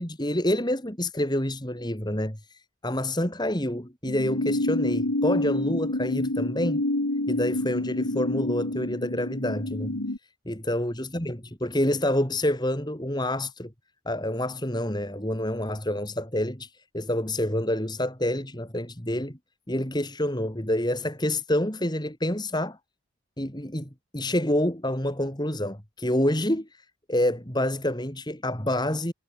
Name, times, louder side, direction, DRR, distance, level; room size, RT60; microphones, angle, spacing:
voice 1, 0.0-6.8 7.3-10.0 10.5-13.7 14.1-16.7 16.9-19.4 19.7-22.8 23.4-26.7 27.1-29.1, left 1 dB, 20° left, 3.5 m, -27 dB
sound 1, 4.0-10.2, left 1 dB, 85° left, 2.2 m, -28 dB
head